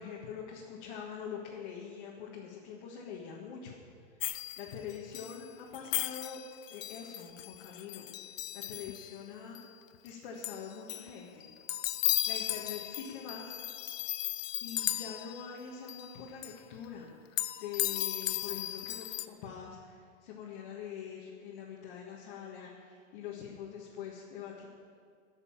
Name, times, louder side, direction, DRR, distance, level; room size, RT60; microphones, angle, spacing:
voice 1, 0.0-3.8 4.2-6.4 6.7-8.1 8.5-9.6 10.0-11.5 12.3-13.6 14.6-17.1 17.6-24.7, left 7 dB, 45° left, -4 dB, 1.8 m, -44 dB
sound 1, 4.2-5.4 5.7-9.2 9.5-9.6 9.9-10.1 10.4-11.1 11.4-15.6 15.9-16.2 16.4-16.5 17.4-19.3, left 13 dB, 85° left, 0.7 m, -36 dB
17.0 x 6.9 x 7.1 m, 2.1 s
supercardioid pair, 165°, 38 cm